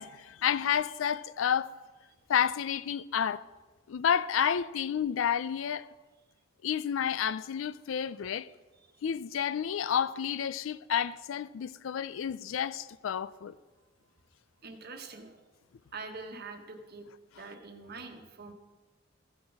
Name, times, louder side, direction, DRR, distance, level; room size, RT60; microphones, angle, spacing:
voice 1, 0.0-1.7 2.3-3.4 3.9-5.9 6.6-8.5 9.0-13.5, left 8 dB, 75° left, 0.4 m, -30 dB
voice 2, 14.6-15.4 15.9-17.1 17.4-18.5, right 4 dB, 55° right, 1.2 m, -44 dB
15.0 x 6.4 x 4.6 m
head